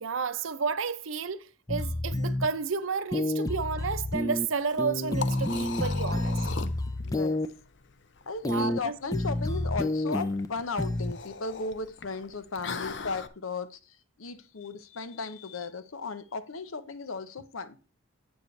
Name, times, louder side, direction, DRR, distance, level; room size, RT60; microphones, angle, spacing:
voice 1, 0.0-6.5 8.4-9.0, right 5 dB, 80° right, 0.7 m, -31 dB
sound 1, 1.7-2.5 3.1-4.5 4.8-7.5 8.4-8.8 9.1-10.5 10.8-11.1, left 1 dB, 15° left, 0.4 m, -29 dB
Liquid, 4.6-13.3, left 5 dB, 60° left, 0.6 m, -40 dB
voice 2, 7.0-7.5 8.3-13.8 14.2-17.8, left 4 dB, 90° left, 0.8 m, -36 dB
9.3 x 8.0 x 3.2 m
head